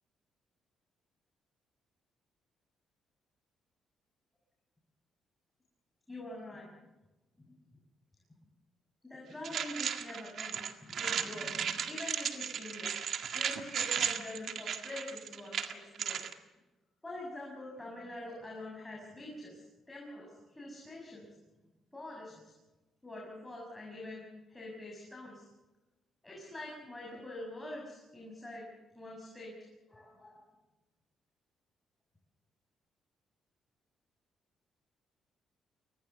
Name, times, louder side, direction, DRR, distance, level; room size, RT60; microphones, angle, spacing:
voice 1, 6.1-6.7 9.0-12.9 13.3-16.2 17.0-21.3 21.9-22.5 23.0-25.4 26.2-28.6 28.9-29.5 29.9-30.4, left 1 dB, 15° left, -1 dB, 6.7 m, -45 dB
sound 1, 9.4-16.3, right 8 dB, 65° right, 1.8 m, -35 dB
24.5 x 18.5 x 7.0 m, 1.1 s
cardioid pair, 90°, 0 cm